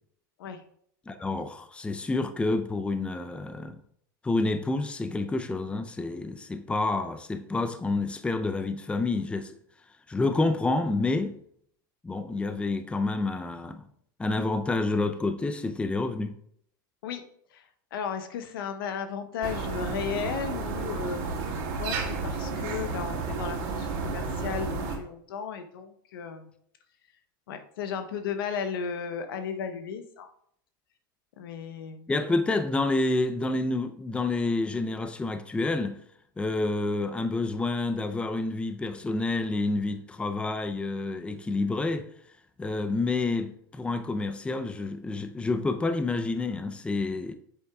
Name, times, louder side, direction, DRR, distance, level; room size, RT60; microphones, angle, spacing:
voice 1, 1.1-3.8 4.2-9.5 10.1-11.4 12.0-13.8 14.2-16.3 32.1-36.0 36.4-42.1 42.6-47.3, left 3 dB, 10° left, 0.5 m, -28 dB
voice 2, 17.5-21.2 21.5-26.5 27.5-30.3 31.4-32.1, left 7 dB, 80° left, 0.9 m, -35 dB
sound 1, 19.4-25.0, right 4 dB, 60° right, 2.0 m, -32 dB
8.0 x 7.9 x 2.4 m
hypercardioid pair, 105°, 12 cm